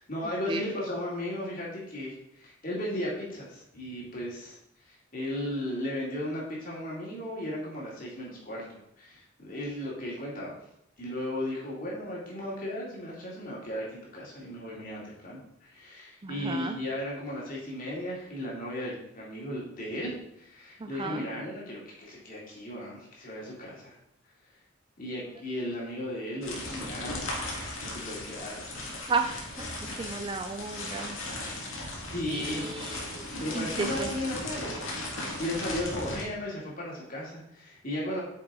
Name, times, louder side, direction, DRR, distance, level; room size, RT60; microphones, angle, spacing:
voice 1, 0.0-10.6 11.0-24.0 25.0-27.3 27.8-29.0 31.0-31.5 31.9-32.6 33.4-34.9 35.4-38.2, left 1 dB, 40° left, -4 dB, 2.6 m, -36 dB
voice 2, 16.2-16.8 20.8-21.2 29.1-29.3 29.6-29.7 30.0-31.2 32.3-33.2 33.5-34.1, right 4 dB, 25° right, 5 dB, 0.4 m, -33 dB
sound 1, 26.4-36.2, left 1 dB, 65° left, 2.0 m, -37 dB
8.6 x 6.3 x 3.8 m, 0.78 s
head